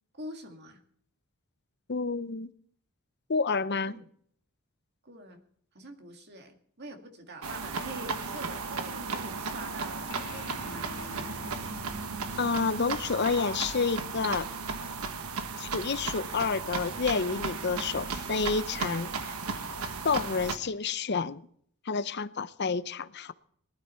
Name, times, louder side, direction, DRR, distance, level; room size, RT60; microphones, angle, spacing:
voice 1, 0.1-0.8 3.8-4.1 5.0-5.4 5.7-11.3, right 1 dB, 50° right, 2.1 m, -45 dB
voice 2, 1.9-2.5 3.3-3.9 12.4-14.5 15.6-19.1 20.0-21.4 21.9-23.3, left 4 dB, 50° left, 0.7 m, -29 dB
sound 1, 7.4-20.6, right 4 dB, 80° right, 1.3 m, -35 dB
sound 2, 10.1-16.9, left 1 dB, 65° left, 2.7 m, -49 dB
19.0 x 12.5 x 4.4 m
head